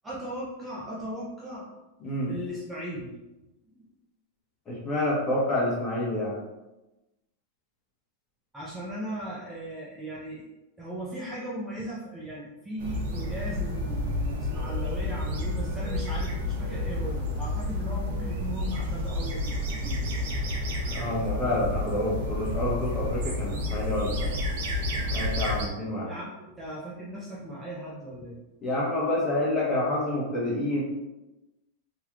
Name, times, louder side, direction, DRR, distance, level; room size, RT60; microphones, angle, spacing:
voice 1, 0.0-1.7 2.3-3.2 3.8-3.9 8.5-10.4 10.8-19.5 19.8-20.0 26.0-28.4, equal, 10° right, -7 dB, 0.7 m, -37 dB
voice 2, 2.0-2.3 4.7-6.4 20.9-24.4 25.1-26.1 28.6-30.8, left 1 dB, 25° left, -6 dB, 1.3 m, -28 dB
sound 1, 12.8-25.7, left 1 dB, 60° right, 0.7 m, -30 dB
3.0 x 3.0 x 2.5 m, 1.0 s
hypercardioid pair, 130°, 0 cm